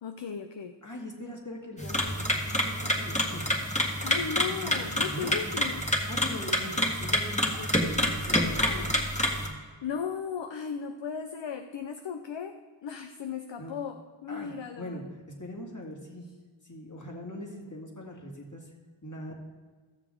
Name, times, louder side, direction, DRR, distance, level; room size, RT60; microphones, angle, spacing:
voice 1, 0.0-0.8 4.0-5.9 7.7-7.8 8.6-9.1 9.8-15.0, left 6 dB, 60° left, 7 dB, 0.6 m, -36 dB
voice 2, 0.8-3.5 4.2-5.3 6.1-8.9 13.6-13.7 14.3-16.3 16.6-18.7 19.0-19.3, left 1 dB, 35° left, 0 dB, 2.1 m, -41 dB
sound 1, 1.8-9.5, left 1 dB, 15° left, 1.6 m, -28 dB
15.5 x 7.0 x 3.8 m, 1.4 s
wide cardioid pair, 40°, 50 cm